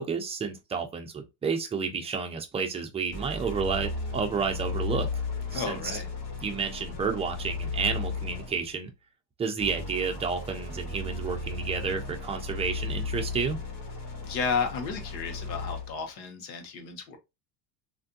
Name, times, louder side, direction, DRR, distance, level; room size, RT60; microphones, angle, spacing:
voice 1, 0.0-5.1 5.5-5.8 6.4-8.9 9.4-13.6, right 5 dB, 15° right, 0.4 m, -31 dB
sound 1, 3.1-8.7 9.6-16.0, left 3 dB, 50° left, 1.7 m, -35 dB
voice 2, 5.5-6.1 14.2-17.2, left 5 dB, 90° left, 1.1 m, -32 dB
3.4 x 2.6 x 2.6 m
supercardioid pair, 110°, 50 cm